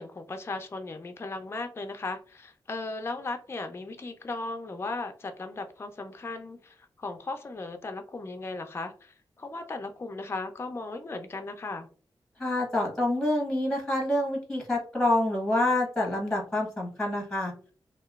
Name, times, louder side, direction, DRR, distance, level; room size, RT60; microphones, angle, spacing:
voice 1, 0.0-11.9, left 3 dB, 30° left, 6 dB, 0.3 m, -37 dB
voice 2, 12.4-17.5, left 1 dB, 5° left, -2 dB, 0.9 m, -27 dB
2.9 x 2.1 x 2.3 m, 0.40 s
wide cardioid pair, 95°, 9 cm